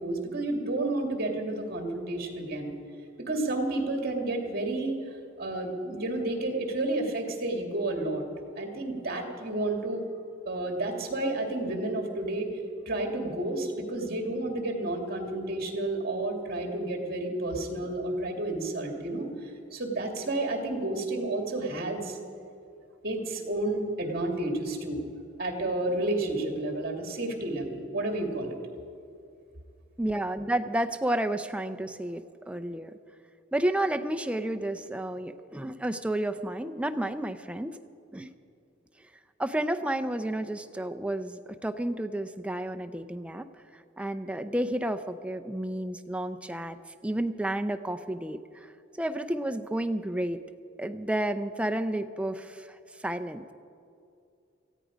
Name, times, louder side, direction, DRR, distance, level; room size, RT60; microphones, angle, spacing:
voice 1, 0.0-2.7 3.2-4.9 5.4-8.2 8.6-10.1 10.5-12.5 12.9-22.2 23.0-25.1 25.4-28.5, right 2 dB, 50° right, 3 dB, 2.3 m, -31 dB
voice 2, 30.0-33.0 33.5-37.8 38.1-38.3 39.4-43.5 44.0-46.8 47.0-48.7 49.0-50.4 50.8-53.5, right 1 dB, 5° right, 7 dB, 0.5 m, -31 dB
18.0 x 15.0 x 5.1 m, 2.5 s
head